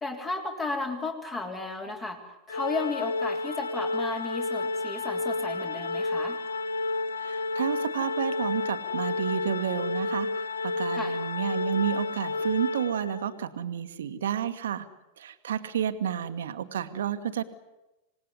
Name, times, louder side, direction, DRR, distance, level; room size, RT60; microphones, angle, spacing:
voice 1, 0.0-2.2 2.5-6.4 10.9-11.2, left 3 dB, 20° left, 2 dB, 3.4 m, -34 dB
Organ, 2.5-13.4, left 3 dB, 70° left, 0.9 m, -31 dB
voice 2, 7.2-14.9 15.2-17.4, right 9 dB, 60° right, 11 dB, 1.6 m, -31 dB
27.0 x 19.0 x 9.8 m, 1.0 s
figure-of-eight pair, 90°, 0 cm